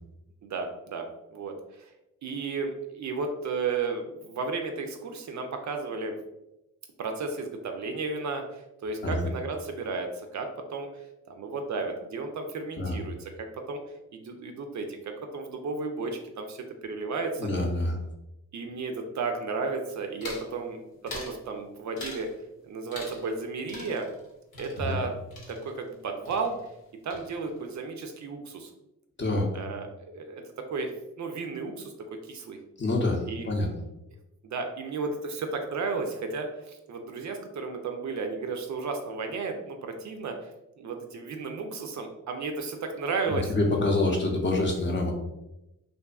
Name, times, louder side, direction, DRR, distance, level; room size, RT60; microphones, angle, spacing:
voice 1, 0.4-1.0 1.3-1.9 2.2-6.2 7.0-13.8 14.1-17.5 18.5-22.3 22.6-24.1 24.6-25.1 25.5-26.6 27.0-28.7 29.5-32.6 33.3-33.5 34.4-40.5 40.8-43.5, right 4 dB, 55° right, 4 dB, 0.4 m, -33 dB
voice 2, 17.4-18.0 24.8-25.0 29.2-29.5 32.8-33.7 43.3-45.1, left 2 dB, 30° left, 1 dB, 0.7 m, -26 dB
sound 1, 20.2-20.5 21.1-21.4 22.0-22.3 22.9-23.4 23.7-26.0 26.3-26.8 27.1-27.7, left 2 dB, 75° left, 0.8 m, -43 dB
2.5 x 2.3 x 2.3 m, 0.92 s
supercardioid pair, 45°, 36 cm